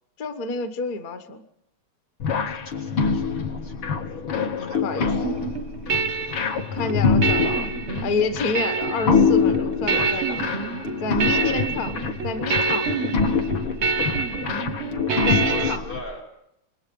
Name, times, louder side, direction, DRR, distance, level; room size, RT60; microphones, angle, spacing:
voice 1, 0.2-1.4 4.6-5.1 6.6-7.7 8.0-10.6 11.0-12.9 15.2-15.8, left 4 dB, 45° left, 8 dB, 1.5 m, -29 dB
sound 1, 2.2-16.0, left 5 dB, 70° left, 2.1 m, -25 dB
voice 2, 2.5-3.7 4.6-5.4 6.7-6.9 11.2-11.6 15.3-16.2, left 2 dB, 90° left, 1 dB, 6.9 m, -39 dB
sound 2, 5.2-15.8, right 5 dB, 55° right, 0.7 m, -27 dB
27.5 x 21.0 x 5.3 m, 0.82 s
omnidirectional pair, 2.4 m